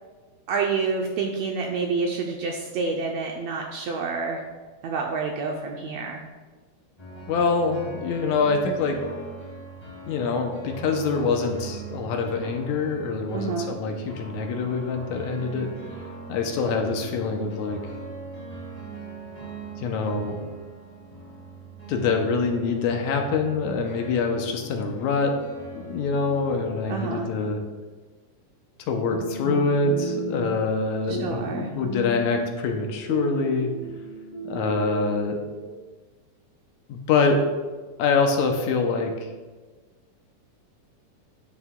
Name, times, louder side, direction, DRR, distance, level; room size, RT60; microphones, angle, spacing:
voice 1, 0.5-4.4 4.8-6.2 13.3-13.7 26.9-27.3 31.1-31.7, right 4 dB, 80° right, 1 dB, 1.5 m, -28 dB
sound 1, 7.0-26.9, right 3 dB, 20° left, 1.1 m, -41 dB
voice 2, 7.3-9.0 10.1-16.0 16.3-17.8 19.8-20.4 21.9-25.4 25.7-27.6 28.9-33.7 34.4-35.4 36.9-37.4 38.0-39.3, left 4 dB, 80° left, 4 dB, 1.8 m, -25 dB
sound 2, 29.1-30.8 31.1-32.7 33.1-35.7, right 1 dB, 50° right, 2.0 m, -34 dB
10.5 x 6.9 x 2.3 m, 1.4 s
omnidirectional pair, 3.7 m